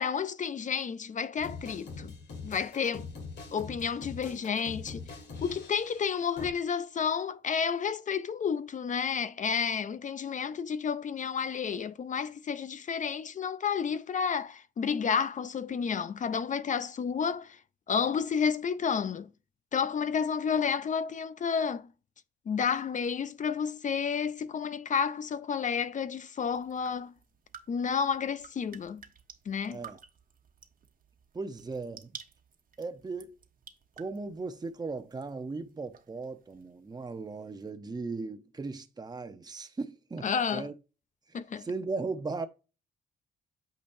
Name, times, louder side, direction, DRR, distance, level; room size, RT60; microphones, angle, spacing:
voice 1, 0.0-2.1 2.4-3.1 3.5-5.0 5.4-17.6 17.9-19.3 19.7-21.9 22.5-27.1 27.7-29.0 29.5-29.9 40.2-40.7 41.3-41.7, left 6 dB, 40° left, 0.5 m, -31 dB
sound 1, 1.4-6.5, left 4 dB, 60° left, 2.2 m, -43 dB
sound 2, 26.4-37.7, right 7 dB, 45° right, 1.1 m, -54 dB
voice 2, 29.7-30.0 31.3-32.2 32.8-33.3 34.0-40.7 41.3-42.5, right 3 dB, 20° right, 0.8 m, -37 dB
8.6 x 5.2 x 2.7 m
cardioid pair, 90°, 20 cm